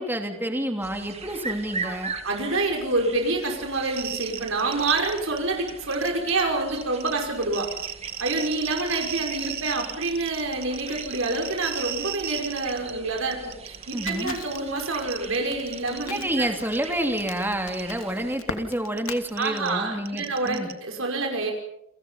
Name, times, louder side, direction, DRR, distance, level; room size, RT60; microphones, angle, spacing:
voice 1, 0.0-2.1 13.9-14.4 16.0-20.7, right 1 dB, 10° right, 4 dB, 3.1 m, -29 dB
sound 1, 0.8-18.4, right 4 dB, 30° right, 2.4 m, -41 dB
voice 2, 2.2-7.7 8.2-16.5 19.4-21.5, right 3 dB, 75° right, 2 dB, 5.3 m, -27 dB
sound 2, 3.9-5.4 5.7-6.4 6.8-12.9 13.2-15.4 15.7-16.2 16.7-16.9 17.2-17.3 17.7-17.8 18.9-20.7, right 10 dB, 50° right, 1.9 m, -35 dB
Crackle, 14.1-19.2, left 4 dB, 85° left, 2.8 m, -39 dB
30.0 x 24.0 x 5.6 m, 0.77 s
head